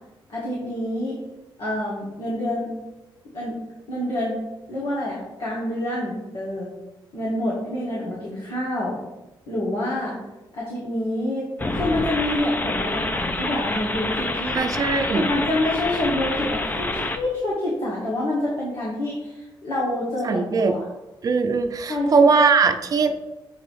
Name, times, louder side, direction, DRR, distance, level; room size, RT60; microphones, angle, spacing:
voice 1, 0.3-1.2 1.6-2.7 3.3-3.6 3.9-4.4 4.7-6.7 7.1-9.0 9.5-10.2 10.5-11.4 11.7-14.6 15.1-20.8 21.9-22.3, left 1 dB, 70° left, -7 dB, 2.0 m, -27 dB
sound 1, 11.6-17.2, left 2 dB, 20° left, 0.5 m, -27 dB
voice 2, 14.5-15.2 20.2-20.8 21.2-23.3, right 4 dB, 40° right, 6 dB, 0.5 m, -20 dB
7.7 x 3.0 x 4.6 m, 1.1 s
cardioid pair, 105°, 9 cm